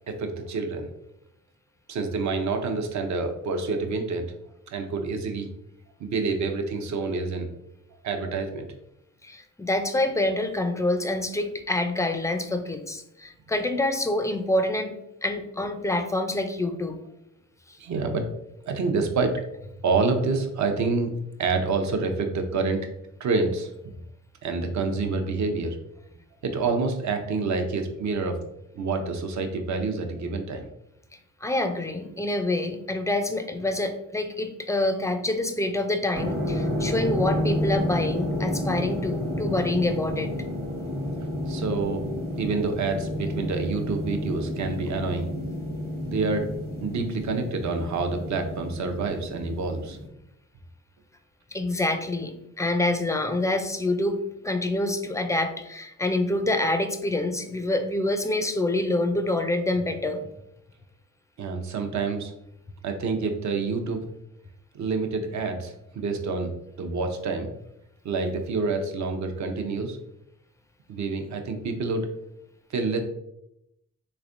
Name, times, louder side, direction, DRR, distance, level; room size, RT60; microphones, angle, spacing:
voice 1, 0.1-0.9 1.9-4.3 4.7-5.5 6.0-7.5 8.0-8.7 17.8-18.3 18.7-19.4 19.8-21.1 21.4-22.9 23.2-23.9 24.4-25.8 26.4-28.4 28.7-30.7 41.5-42.1 42.4-45.3 46.1-46.5 46.8-50.0 61.4-62.3 62.8-64.0 64.7-66.5 66.8-67.5 68.0-70.0 70.9-72.1 72.7-73.0, right 4 dB, 60° right, 5 dB, 0.7 m, -27 dB
voice 2, 9.2-14.9 15.2-17.0 31.4-40.3 51.5-60.2, left 2 dB, 10° left, 7 dB, 0.3 m, -26 dB
sound 1, 36.1-50.1, left 1 dB, 30° right, 0.9 m, -30 dB
3.4 x 3.2 x 2.5 m, 0.81 s
cardioid pair, 75°, 33 cm